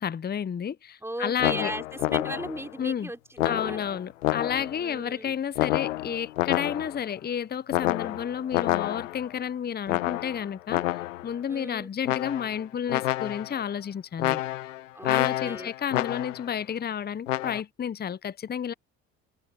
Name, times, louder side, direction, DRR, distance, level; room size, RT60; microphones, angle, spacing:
voice 1, 0.0-1.7 2.8-3.1 3.4-10.9 11.2-14.4 15.0-18.7, left 8 dB, 25° left, 0.8 m, -31 dB
voice 2, 1.0-4.0 4.8-5.4 11.5-11.9 14.9-15.7, right 1 dB, 5° right, 5.4 m, -37 dB
sound 1, 1.4-2.7 3.4-4.9 5.6-7.1 7.7-9.3 9.9-11.3 12.0-12.6 12.9-13.6 14.2-16.5 17.3-17.6, left 15 dB, 85° left, 1.3 m, -28 dB
hypercardioid pair, 60°, 37 cm